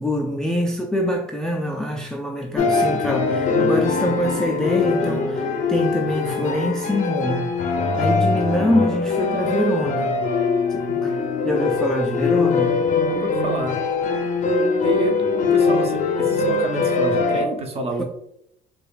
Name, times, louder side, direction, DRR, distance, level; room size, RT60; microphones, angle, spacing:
voice 1, 0.0-10.2 10.7-11.1 11.4-12.8 18.0-18.1, left 1 dB, 5° left, 0.3 m, -24 dB
sound 1, 2.6-17.5, left 4 dB, 50° left, 0.6 m, -22 dB
voice 2, 13.1-13.8 14.8-15.2 15.5-18.0, right 2 dB, 35° right, 0.8 m, -28 dB
4.8 x 2.3 x 2.3 m
cardioid pair, 110°, 17 cm